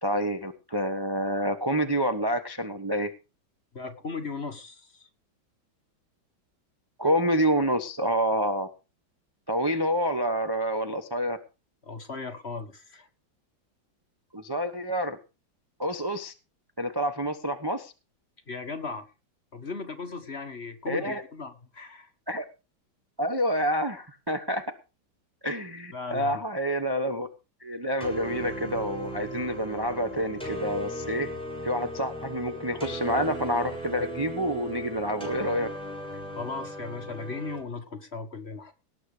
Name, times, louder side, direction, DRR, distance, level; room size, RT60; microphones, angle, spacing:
voice 1, 0.0-3.1 7.0-8.7 9.5-11.4 14.3-15.2 15.8-16.3 16.8-17.9 20.9-21.2 22.3-22.4 23.2-24.7 25.4-27.3 27.6-31.3 31.6-35.7, equal, 15° right, 6 dB, 0.9 m, -28 dB
voice 2, 3.7-5.1 11.8-13.1 18.5-19.1 19.5-22.1 25.9-26.4 36.3-38.7, left 4 dB, 35° left, 7 dB, 1.6 m, -37 dB
sound 1, 28.0-37.6, right 1 dB, ahead, 6.6 m, -37 dB
18.5 x 7.8 x 5.0 m, 0.31 s
omnidirectional pair, 2.1 m